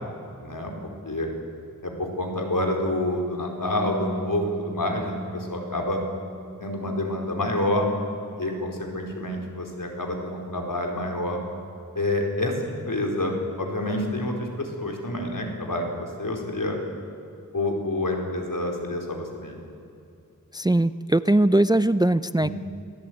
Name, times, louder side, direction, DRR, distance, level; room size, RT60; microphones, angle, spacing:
voice 1, 0.4-0.7 1.0-1.3 1.8-6.0 6.6-7.9 8.4-11.4 11.9-16.8 17.5-19.6 22.4-22.5, left 1 dB, 65° left, 2 dB, 4.5 m, -28 dB
Piano, 3.2-10.5, equal, 60° right, 6.5 m, -41 dB
voice 2, 20.5-22.5, right 1 dB, 10° right, 14 dB, 0.5 m, -20 dB
27.5 x 17.5 x 9.4 m, 2.7 s
wide cardioid pair, 65°, 34 cm